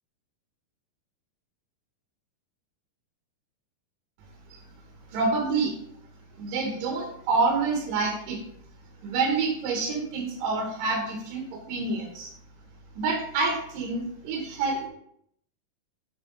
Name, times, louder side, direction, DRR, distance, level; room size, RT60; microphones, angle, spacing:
voice 1, 5.1-5.7 6.4-8.4 9.0-12.3 12.9-14.9, right 3 dB, 80° right, 1 dB, 2.7 m, -27 dB
8.8 x 3.9 x 3.7 m, 0.70 s
omnidirectional pair, 4.0 m